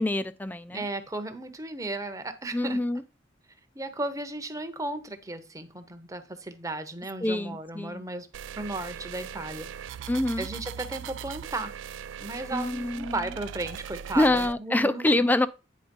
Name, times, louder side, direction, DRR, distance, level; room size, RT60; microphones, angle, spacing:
voice 1, 0.0-0.8 2.5-3.0 7.2-8.0 10.1-10.5 12.5-13.2 14.2-15.5, left 1 dB, 10° left, 0.4 m, -25 dB
voice 2, 0.7-2.8 3.7-8.3 8.5-9.7 10.4-11.7 12.2-15.2, right 2 dB, 20° right, 0.9 m, -35 dB
sound 1, 8.3-14.5, right 8 dB, 80° right, 0.3 m, -40 dB
9.5 x 3.5 x 5.3 m
head